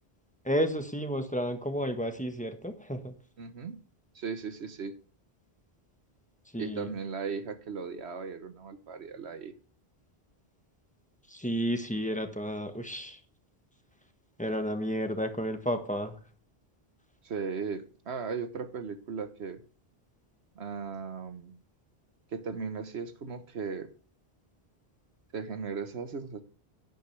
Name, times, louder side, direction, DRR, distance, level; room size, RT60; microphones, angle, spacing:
voice 1, 0.4-3.1 6.5-6.9 11.3-13.2 14.4-16.1, equal, 5° left, 6 dB, 1.3 m, -31 dB
voice 2, 3.4-3.8 4.1-5.0 6.6-9.5 17.2-19.6 20.5-21.5 22.3-23.9 25.3-26.4, right 5 dB, 85° right, 10 dB, 1.4 m, -37 dB
11.5 x 9.4 x 3.4 m, 0.38 s
omnidirectional pair, 1.1 m